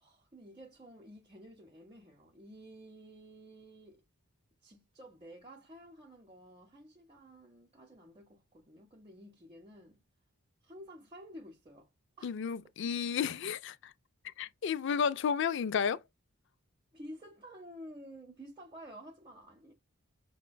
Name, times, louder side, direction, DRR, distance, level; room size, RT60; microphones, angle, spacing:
voice 1, 0.0-4.0 4.6-10.0 10.6-11.9 12.2-12.3 16.9-19.7, equal, 25° right, 0.7 m, -52 dB
voice 2, 12.2-13.9 14.2-16.0, left 7 dB, 55° left, 0.3 m, -32 dB
5.9 x 2.2 x 2.2 m
head